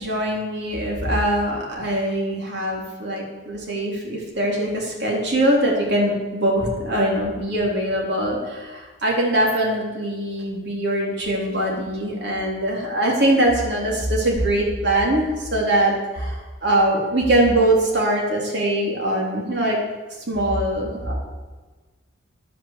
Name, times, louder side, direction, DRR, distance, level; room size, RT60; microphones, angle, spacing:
voice 1, 0.0-19.8 20.3-21.1, right 1 dB, 55° right, -2 dB, 3.4 m, -22 dB
10.5 x 8.9 x 7.4 m, 1.3 s
head